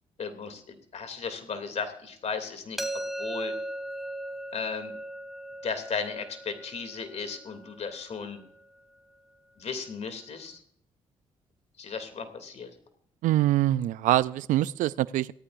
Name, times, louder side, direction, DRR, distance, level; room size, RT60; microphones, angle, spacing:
voice 1, 0.2-3.5 4.5-4.9 5.6-8.4 9.6-10.6 11.8-12.7, left 5 dB, 55° left, 8 dB, 2.8 m, -35 dB
sound 1, 2.8-8.6, right 1 dB, ahead, 2.6 m, -38 dB
voice 2, 13.2-15.3, right 14 dB, 75° right, 19 dB, 0.4 m, -24 dB
17.5 x 14.0 x 2.6 m, 0.65 s
supercardioid pair, 55°, 13 cm